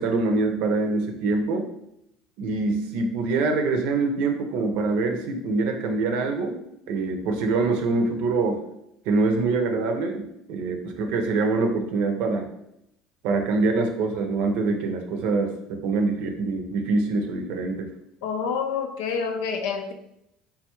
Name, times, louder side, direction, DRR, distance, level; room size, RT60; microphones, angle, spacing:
voice 1, 0.0-1.7 2.4-6.6 6.9-8.6 9.1-10.2 10.5-12.5 13.2-17.9, right 3 dB, 70° right, 4 dB, 0.6 m, -24 dB
voice 2, 18.2-19.9, left 6 dB, 75° left, 6 dB, 0.5 m, -28 dB
3.7 x 2.3 x 3.0 m, 0.79 s
supercardioid pair, 90°, 2 cm